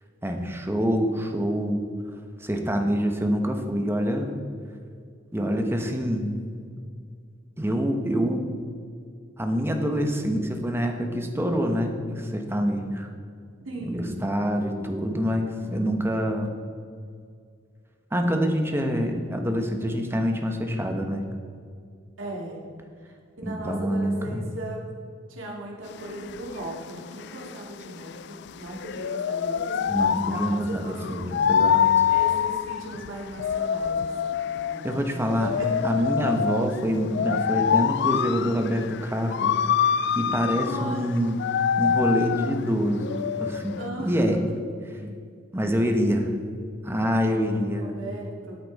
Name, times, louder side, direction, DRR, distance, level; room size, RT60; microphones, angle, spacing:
voice 1, 0.2-1.8 2.4-4.4 5.3-6.4 7.6-8.5 9.4-13.1 13.8-16.5 18.1-21.2 23.4-24.5 29.9-32.1 34.8-35.5 35.8-39.5 40.1-41.4 41.8-44.4 45.5-46.3 46.8-47.9, equal, 10° right, 4 dB, 1.0 m, -26 dB
voice 2, 13.6-14.3 15.6-15.9 22.2-22.6 23.4-24.8 25.3-31.2 32.1-36.0 40.6-41.1 43.8-44.4 44.8-45.2 47.6-48.6, right 1 dB, 85° right, -2 dB, 2.5 m, -38 dB
sound 1, 25.9-43.9, left 8 dB, 60° left, 0.3 m, -26 dB
13.0 x 8.5 x 4.1 m, 2.2 s
head